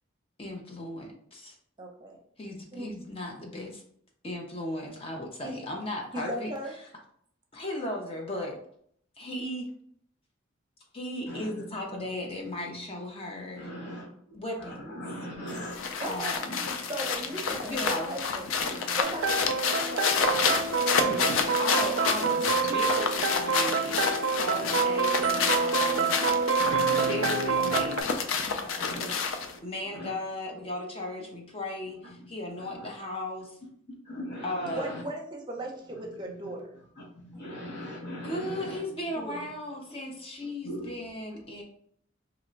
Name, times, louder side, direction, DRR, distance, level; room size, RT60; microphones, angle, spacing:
voice 1, 0.4-1.5 2.4-3.8 4.2-6.5 7.5-8.6 9.2-9.7 10.9-13.7 14.3-14.9 16.0-16.6 17.6-18.2 21.6-22.4 22.7-24.1 24.4-26.2 27.0-28.3 28.6-28.9 29.6-33.6 34.4-35.0 38.2-41.6, left 1 dB, 30° left, 0 dB, 0.5 m, -36 dB
voice 2, 1.8-2.2 2.7-2.9 5.4-5.6 6.1-6.7 16.0-16.4 16.9-18.5 19.0-20.6 29.0-29.2 34.7-36.7 39.2-39.4, right 1 dB, 25° right, 1 dB, 0.7 m, -37 dB
voice 3, 11.3-12.1 12.5-12.9 13.5-15.8 16.4-16.9 18.5-19.0 20.2-20.4 20.8-21.6 22.2-22.9 24.0-24.7 25.9-26.0 26.5-27.4 27.6-27.7 28.4-30.1 32.0-32.9 34.0-35.0 36.0-36.5 37.0-38.8 39.2-39.4 40.6-41.4, equal, 55° left, -6 dB, 0.8 m, -41 dB
sound 1, 15.5-29.6, left 5 dB, 85° left, 0.4 m, -29 dB
sound 2, 19.0-28.0, right 5 dB, 70° right, 0.3 m, -27 dB
2.9 x 2.1 x 3.8 m, 0.65 s
head